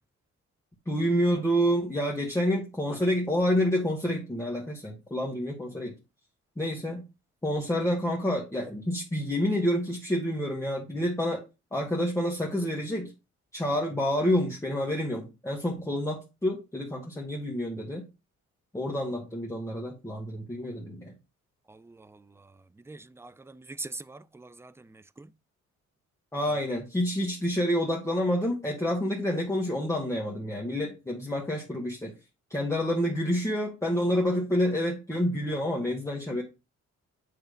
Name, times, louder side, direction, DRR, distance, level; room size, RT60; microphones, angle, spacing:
voice 1, 0.8-5.9 6.6-7.0 7.4-11.4 11.7-13.1 13.5-18.0 18.7-21.1 26.3-32.1 32.5-36.4, equal, 10° left, 1.6 m, -28 dB
voice 2, 21.7-22.5 22.9-25.3, right 2 dB, 10° right, 0.4 m, -44 dB
8.9 x 3.3 x 5.1 m
cardioid pair, 90°, 30 cm